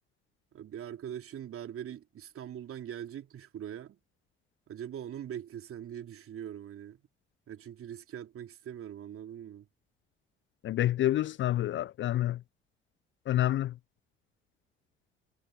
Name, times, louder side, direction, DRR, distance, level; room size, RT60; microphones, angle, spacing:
voice 1, 0.5-4.0 4.7-7.0 7.5-9.7, right 10 dB, 50° right, 2.9 m, -42 dB
voice 2, 10.6-12.4 13.3-13.7, left 13 dB, 40° left, 0.5 m, -28 dB
figure-of-eight pair, 50°, 29 cm